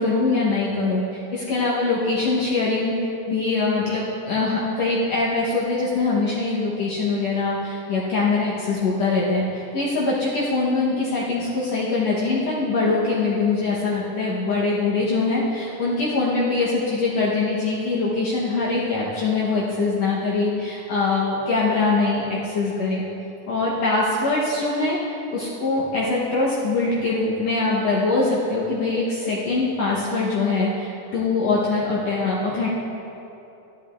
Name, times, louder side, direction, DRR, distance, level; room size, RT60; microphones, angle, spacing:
voice 1, 0.0-23.0 23.5-32.7, left 3 dB, 65° left, -7 dB, 2.0 m, -23 dB
13.0 x 12.0 x 2.5 m, 3.0 s
omnidirectional pair, 3.6 m